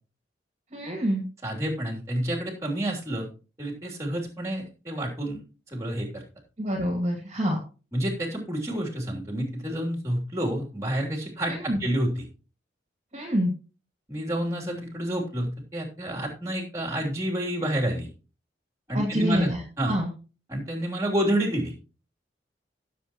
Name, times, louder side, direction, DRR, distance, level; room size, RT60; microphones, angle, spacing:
voice 1, 0.7-1.3 6.6-7.6 11.5-11.8 13.1-13.5 18.9-19.6 19.9-20.1, equal, 35° right, 1 dB, 2.4 m, -26 dB
voice 2, 1.4-3.3 3.6-5.4 5.7-6.2 7.9-12.2 14.1-18.1 18.9-19.5 19.8-19.9 20.5-21.7, right 1 dB, 15° right, 0 dB, 3.0 m, -29 dB
17.0 x 7.5 x 3.0 m, 0.34 s
head